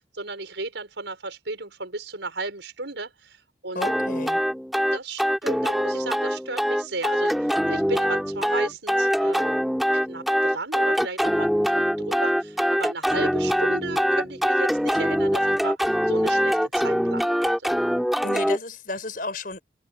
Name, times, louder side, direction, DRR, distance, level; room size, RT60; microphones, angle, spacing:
voice 1, 0.1-3.9 4.9-9.6 9.9-17.7, right 3 dB, 85° right, 5.3 m, -35 dB
voice 2, 3.7-4.4 18.2-19.6, left 2 dB, 50° left, 5.7 m, -32 dB
sound 1, 3.8-18.6, equal, ahead, 2.5 m, -23 dB
head